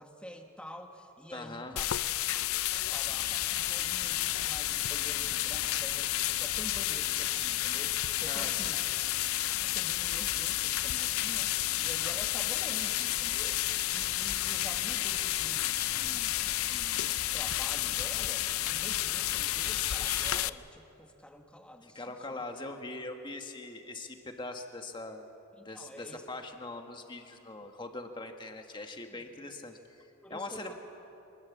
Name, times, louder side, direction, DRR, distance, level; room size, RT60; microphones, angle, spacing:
voice 1, 0.0-1.8 2.3-8.8 9.6-22.4 25.6-26.2 29.1-29.2 30.2-30.7, equal, 5° left, 3 dB, 1.4 m, -48 dB
voice 2, 1.3-1.9 8.3-8.8 21.8-25.3 25.6-30.7, left 2 dB, 20° left, 4 dB, 1.5 m, -42 dB
sound 1, 1.8-20.5, left 15 dB, 70° left, 0.5 m, -31 dB
sound 2, 3.0-20.5, right 1 dB, 20° right, 1.2 m, -49 dB
25.0 x 20.5 x 7.2 m, 3.0 s
head